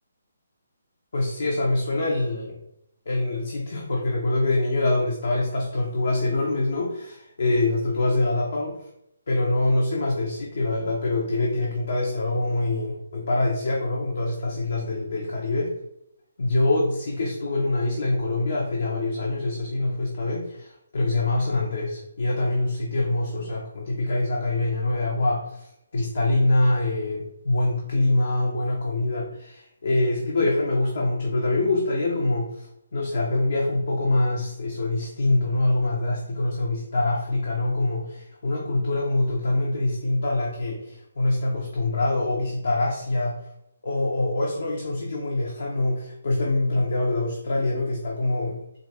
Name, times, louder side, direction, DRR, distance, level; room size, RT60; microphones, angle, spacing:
voice 1, 1.1-2.6 3.1-8.8 9.3-15.7 16.4-32.7 32.9-43.4 43.8-48.6, left 2 dB, 60° left, -3 dB, 0.8 m, -25 dB
3.9 x 2.6 x 3.4 m, 0.79 s
figure-of-eight pair, 140°, 0 cm